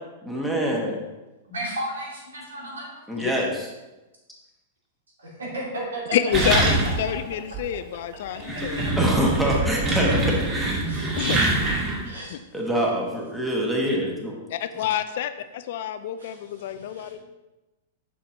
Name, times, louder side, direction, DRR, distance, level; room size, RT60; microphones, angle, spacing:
voice 1, 0.2-1.0 3.1-3.7 8.6-8.7 9.0-10.8 12.5-14.3 14.7-14.8, equal, 5° right, -2 dB, 1.6 m, -25 dB
voice 2, 1.5-3.2 5.2-6.0 8.8-8.9 10.9-11.0 12.0-12.3 16.2-17.2, right 1 dB, 80° right, -3 dB, 2.4 m, -35 dB
voice 3, 6.1-9.0 11.1-11.4 12.3-12.4 14.5-15.3 15.7-17.2, left 10 dB, 60° left, 11 dB, 0.4 m, -27 dB
sound 1, 6.3-7.2 7.5-7.6 8.2-12.0, right 2 dB, 25° right, 1.9 m, -24 dB
7.1 x 6.1 x 2.9 m, 1.1 s
hypercardioid pair, 105°, 0 cm